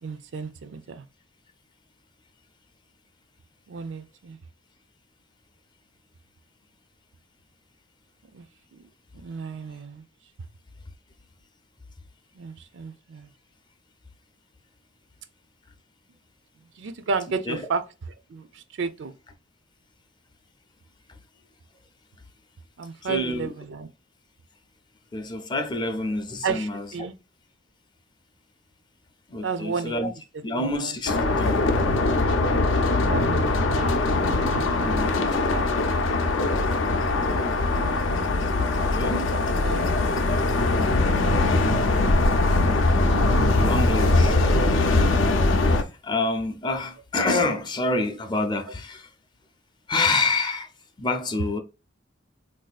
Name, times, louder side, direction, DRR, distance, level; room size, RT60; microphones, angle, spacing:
voice 1, 0.0-1.0 3.7-4.4 8.3-8.5 8.7-8.9 9.1-10.0 12.3-13.3 16.8-17.8 18.3-19.1 22.8-23.9 26.4-27.1 29.4-30.0 30.6-31.0 33.0-36.0 39.0-39.9, right 5 dB, 70° right, 0.4 m, -33 dB
voice 2, 23.0-23.5 25.1-26.9 29.3-30.1 30.4-31.7 34.8-35.4 37.2-37.5 38.7-39.4 43.1-49.1 49.9-50.7 51.0-51.6, left 2 dB, 25° left, 0.4 m, -28 dB
sound 1, 31.1-45.8, left 2 dB, 80° left, 0.5 m, -21 dB
3.7 x 2.6 x 2.3 m
head